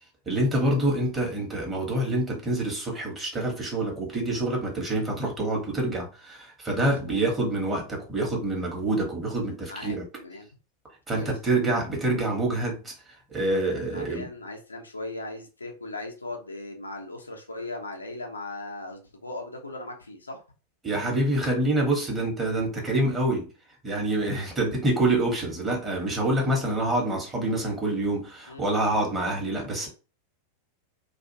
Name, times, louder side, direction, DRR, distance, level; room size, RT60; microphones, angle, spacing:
voice 1, 0.3-10.0 11.1-14.3 20.8-23.5 23.8-29.9, right 1 dB, 15° right, 1.0 m, -26 dB
voice 2, 6.8-7.2 9.7-10.5 11.1-11.3 13.9-20.4 28.5-28.6, left 2 dB, 80° left, 0.6 m, -38 dB
2.5 x 2.3 x 2.7 m
figure-of-eight pair, 90°, 0 cm